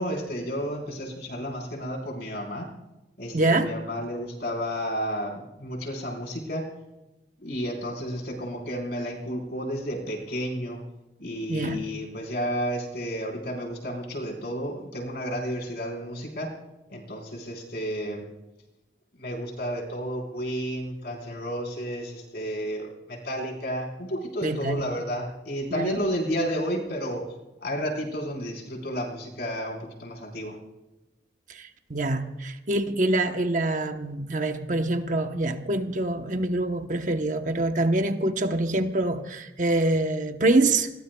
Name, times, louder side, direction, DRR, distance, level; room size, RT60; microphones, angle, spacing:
voice 1, 0.0-2.7 3.2-6.7 7.4-10.8 11.2-16.5 16.9-18.3 19.2-27.2 27.6-30.6, equal, 60° left, 0 dB, 4.6 m, -31 dB
voice 2, 3.3-3.8 11.5-11.9 24.4-24.8 25.7-26.0 31.5-40.9, right 2 dB, 45° right, 6 dB, 1.0 m, -25 dB
29.0 x 21.0 x 2.3 m, 0.98 s
head